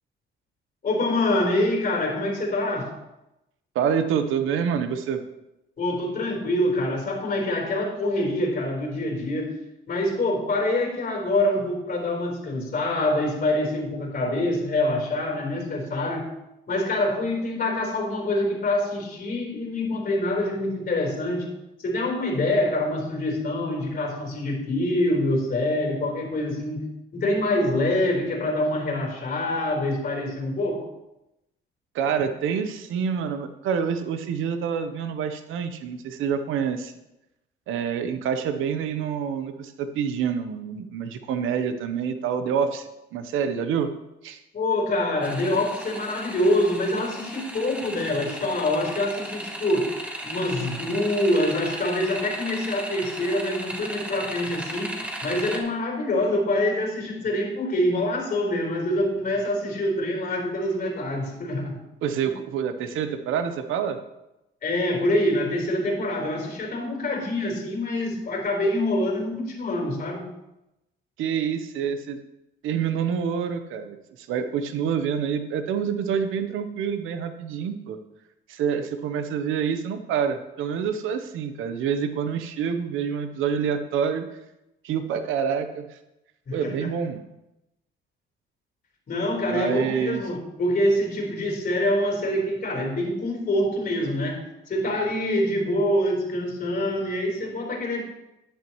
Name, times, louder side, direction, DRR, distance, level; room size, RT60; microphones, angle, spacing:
voice 1, 0.8-2.9 5.8-9.6 9.9-16.3 16.7-21.5 21.8-26.8 27.1-30.9 44.5-49.9 50.2-54.9 55.2-61.8 64.6-70.2 86.5-86.9 89.1-94.4 94.7-98.0, left 1 dB, 45° left, 1 dB, 4.0 m, -25 dB
voice 2, 3.7-5.2 31.9-36.9 37.7-43.9 44.2-44.4 62.0-64.0 71.2-72.2 72.6-78.0 78.5-84.3 84.8-86.0 86.5-87.2 89.5-90.2, right 7 dB, 90° right, 9 dB, 0.9 m, -27 dB
sound 1, 45.2-55.6, right 1 dB, 5° right, 1.8 m, -36 dB
10.5 x 10.0 x 3.1 m, 0.91 s
cardioid pair, 90°, 20 cm